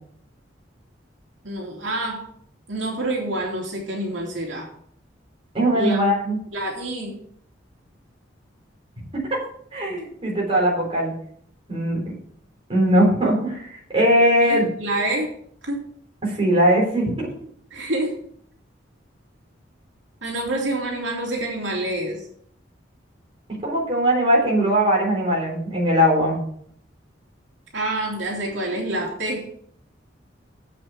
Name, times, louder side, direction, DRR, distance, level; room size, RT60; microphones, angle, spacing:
voice 1, 1.4-2.2 2.7-4.7 5.7-6.0 6.5-7.2 14.3-15.3 15.6-15.8 17.7-18.2 20.2-22.3 27.7-29.5, right 1 dB, 75° right, -2 dB, 2.8 m, -27 dB
voice 2, 5.5-6.4 9.1-9.2 9.7-11.1 11.7-12.0 12.7-14.7 16.2-17.3 23.5-26.4, equal, 30° right, -2 dB, 3.7 m, -20 dB
8.0 x 7.7 x 5.9 m, 0.64 s
head